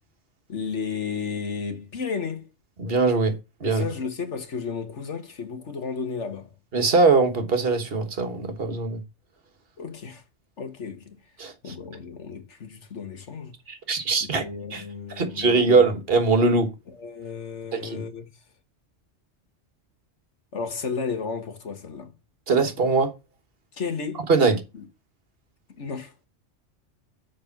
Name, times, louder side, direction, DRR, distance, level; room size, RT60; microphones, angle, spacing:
voice 1, 0.5-2.5 3.7-6.5 9.8-10.2 10.6-11.2 11.6-13.6 14.2-15.8 16.9-18.2 20.5-22.1 23.7-24.3 24.7-24.8 25.8-26.1, left 5 dB, 70° left, 1.8 m, -33 dB
voice 2, 2.8-3.3 3.6-3.8 6.7-9.0 11.4-11.7 13.7-14.4 14.7-14.8 15.2-16.7 17.7-18.0 22.5-23.1 24.3-24.6, right 4 dB, 50° right, 1.6 m, -21 dB
6.6 x 5.2 x 5.9 m
omnidirectional pair, 1.2 m